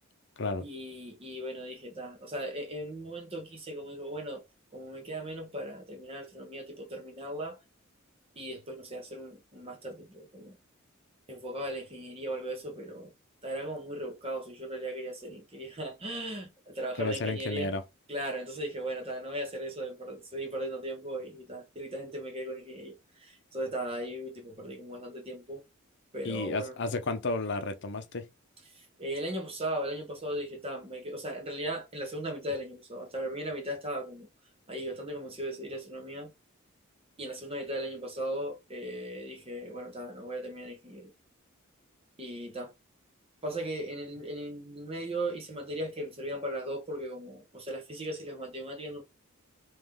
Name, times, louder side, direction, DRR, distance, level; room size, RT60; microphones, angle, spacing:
voice 1, 0.6-4.4 4.7-7.6 8.3-10.6 11.3-13.1 13.4-17.7 18.1-25.6 26.1-26.7 28.7-34.3 34.7-36.3 37.2-41.1 42.2-42.7 43.4-49.0, right 1 dB, 30° right, 1.3 m, -37 dB
voice 2, 17.0-17.8 26.2-28.3, left 3 dB, 60° left, 0.7 m, -32 dB
3.6 x 3.1 x 3.5 m
head